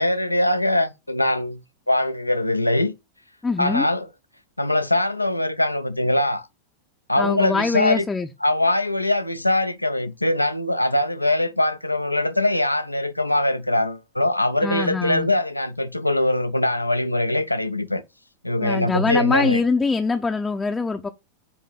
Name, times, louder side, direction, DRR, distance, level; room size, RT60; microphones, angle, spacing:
voice 1, 0.0-1.6 1.9-2.9 3.6-4.1 4.6-6.5 7.1-8.1 8.4-18.0 18.4-19.6, left 1 dB, 85° left, 0.7 m, -22 dB
voice 2, 3.4-3.9 7.2-8.3 14.6-15.3 18.6-21.1, left 4 dB, 10° left, 0.7 m, -23 dB
9.4 x 3.6 x 5.6 m
figure-of-eight pair, 90°, 0 cm